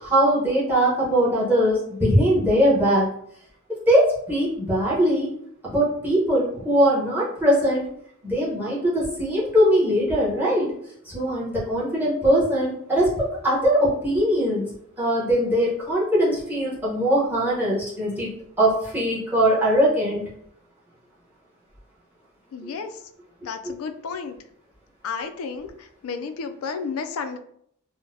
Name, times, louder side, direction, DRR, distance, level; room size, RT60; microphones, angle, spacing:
voice 1, 0.0-3.1 3.7-5.3 5.6-7.9 8.2-10.7 11.1-14.6 15.0-18.3 18.6-20.3 22.6-22.7 23.6-23.7, equal, 10° right, -7 dB, 0.9 m, -21 dB
voice 2, 22.5-22.9 23.4-24.4 25.0-27.4, left 5 dB, 80° left, 8 dB, 0.3 m, -32 dB
3.8 x 2.1 x 2.6 m, 0.68 s
head